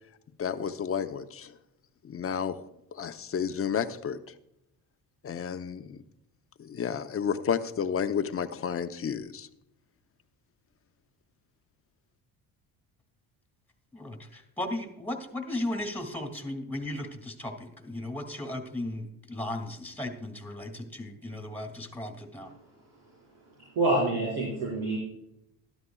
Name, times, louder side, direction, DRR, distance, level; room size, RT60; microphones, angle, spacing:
voice 1, 0.4-1.5 2.0-4.2 5.2-6.0 6.6-9.5, left 7 dB, 35° left, 10 dB, 0.8 m, -31 dB
voice 2, 13.9-22.5, left 1 dB, 5° left, 4 dB, 2.2 m, -36 dB
voice 3, 23.7-25.0, right 2 dB, 75° right, -6 dB, 4.7 m, -26 dB
13.0 x 12.5 x 2.3 m, 0.85 s
cardioid pair, 90°, 40 cm